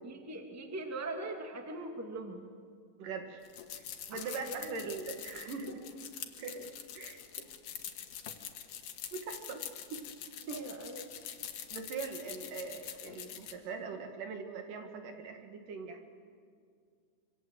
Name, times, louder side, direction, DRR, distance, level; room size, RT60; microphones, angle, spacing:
voice 1, 0.0-2.5 4.1-5.0 5.6-5.7 10.5-11.1, right 2 dB, 5° right, 3 dB, 1.6 m, -42 dB
voice 2, 3.0-3.4 3.7-5.8 6.4-7.5 9.1-9.6 9.9-10.0 10.5-10.6 11.7-16.1, right 5 dB, 70° right, 5 dB, 3.6 m, -42 dB
sound 1, 3.4-13.5, left 9 dB, 75° left, 3.0 m, -45 dB
26.0 x 25.0 x 7.9 m, 2.1 s
omnidirectional pair, 4.0 m